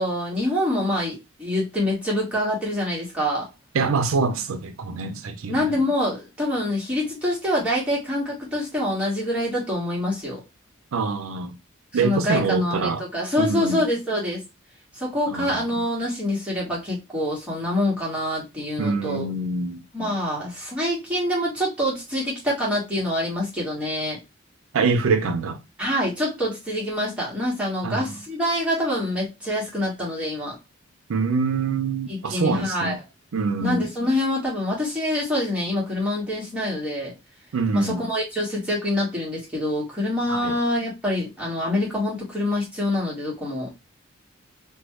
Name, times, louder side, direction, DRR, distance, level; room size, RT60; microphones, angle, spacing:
voice 1, 0.0-3.5 5.5-10.4 11.9-14.4 14.9-19.3 19.9-24.2 25.8-30.5 32.1-33.0 33.6-37.1 37.7-43.7, left 1 dB, 5° right, 1.3 m, -25 dB
voice 2, 3.7-5.8 10.9-11.6 11.9-13.0 13.4-13.8 15.3-15.8 18.8-19.8 24.7-25.6 27.8-28.1 31.1-33.0 33.3-33.9 37.5-38.1 40.3-40.5, right 4 dB, 90° right, 0.5 m, -25 dB
3.0 x 2.2 x 3.1 m
head